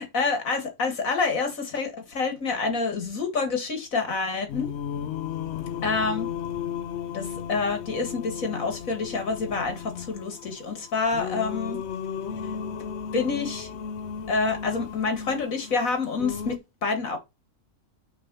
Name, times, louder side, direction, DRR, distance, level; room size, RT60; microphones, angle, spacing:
voice 1, 0.0-4.7 5.8-6.3 7.1-11.8 13.1-13.7 14.3-17.2, left 4 dB, 90° left, 2.4 m, -27 dB
Singing, 4.5-16.6, left 8 dB, 60° left, 0.9 m, -35 dB
6.5 x 3.9 x 5.5 m
omnidirectional pair, 1.4 m